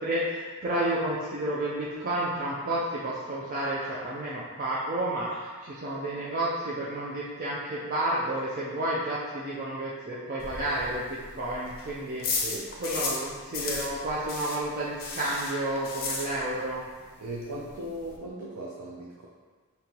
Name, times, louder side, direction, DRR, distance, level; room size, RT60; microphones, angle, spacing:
voice 1, 0.0-12.4 12.8-16.8, right 1 dB, 40° right, -6 dB, 0.5 m, -31 dB
sound 1, 10.4-13.3 13.5-16.7 17.0-17.1 17.4-17.5 17.7-18.2, left 4 dB, 40° left, 0.6 m, -34 dB
voice 2, 12.4-12.7 13.1-13.2 17.2-19.3, right 1 dB, 90° right, -4 dB, 0.6 m, -38 dB
5.1 x 2.8 x 2.9 m, 1.5 s
head